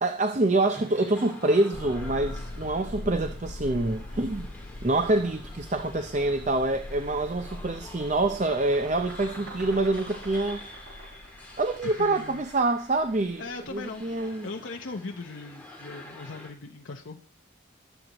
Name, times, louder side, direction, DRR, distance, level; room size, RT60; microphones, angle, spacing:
voice 1, 0.0-4.5 4.8-10.6 11.6-13.4 13.7-14.5, right 2 dB, 35° right, 0.6 m, -26 dB
sound 1, 0.6-16.5, left 1 dB, 10° left, 2.2 m, -48 dB
sound 2, 1.7-14.2, left 1 dB, 50° left, 0.6 m, -42 dB
sound 3, 7.0-7.1 7.4-12.4, right 2 dB, 75° right, 7.3 m, -46 dB
voice 2, 11.8-12.4 13.4-17.2, left 3 dB, 80° left, 0.8 m, -39 dB
19.5 x 7.9 x 3.0 m
head